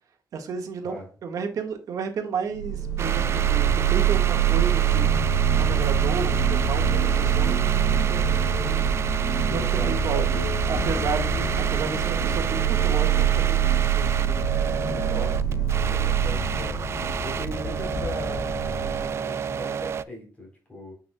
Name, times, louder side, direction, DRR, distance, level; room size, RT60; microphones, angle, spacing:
voice 1, 0.3-5.3 5.5-8.8 9.4-10.4 10.7-14.5, right 5 dB, 65° right, 1.6 m, -33 dB
sound 1, 2.5-19.1, right 8 dB, 55° left, 3.9 m, -24 dB
sound 2, 3.0-20.0, right 7 dB, 45° right, 0.4 m, -31 dB
voice 2, 9.4-10.6 15.0-16.8 17.2-20.9, equal, 25° left, 3.7 m, -39 dB
9.1 x 5.8 x 2.3 m
cardioid pair, 135°, 6 cm